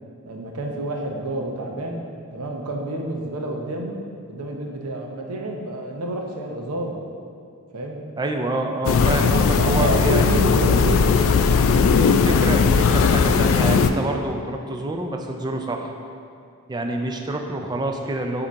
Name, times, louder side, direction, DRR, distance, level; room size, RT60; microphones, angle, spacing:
voice 1, 0.2-2.0 2.3-4.0 4.3-7.0 7.7-8.1 9.6-11.2, right 1 dB, 80° right, 1 dB, 0.7 m, -29 dB
voice 2, 8.2-10.4 12.0-15.9 16.7-18.5, right 2 dB, 20° right, 3 dB, 0.4 m, -27 dB
sound 1, 8.8-13.9, left 5 dB, 60° left, 0.3 m, -18 dB
7.5 x 2.8 x 4.6 m, 2.3 s
head